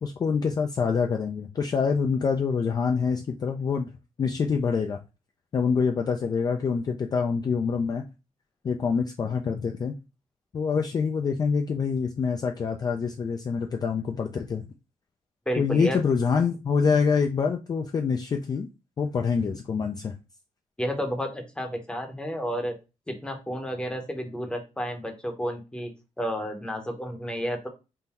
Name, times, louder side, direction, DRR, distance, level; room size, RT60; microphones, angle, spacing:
voice 1, 0.0-3.9 4.2-5.0 5.5-8.1 8.6-9.9 10.5-14.6 15.6-18.7 19.0-20.1, left 5 dB, 35° left, 3 dB, 0.4 m, -26 dB
voice 2, 15.5-16.0 20.8-22.8 23.1-25.9 26.2-27.7, equal, 10° left, 4 dB, 0.8 m, -31 dB
3.7 x 2.6 x 4.2 m, 0.28 s
wide cardioid pair, 170°, 12 cm